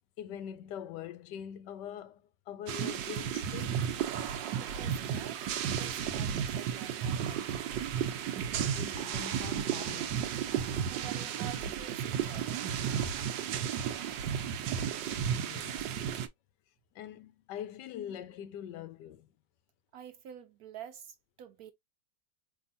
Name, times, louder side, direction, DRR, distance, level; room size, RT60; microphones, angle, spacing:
voice 1, 0.2-3.9 8.7-10.1 10.4-10.7 15.3-15.9 16.9-19.3, left 9 dB, 75° left, 1.2 m, -43 dB
sound 1, 2.7-16.3, right 8 dB, 85° right, 1.4 m, -33 dB
voice 2, 4.6-5.4 5.8-7.7 10.9-12.7 19.9-21.7, right 10 dB, 70° right, 1.0 m, -48 dB
4.7 x 3.3 x 2.6 m
omnidirectional pair, 1.9 m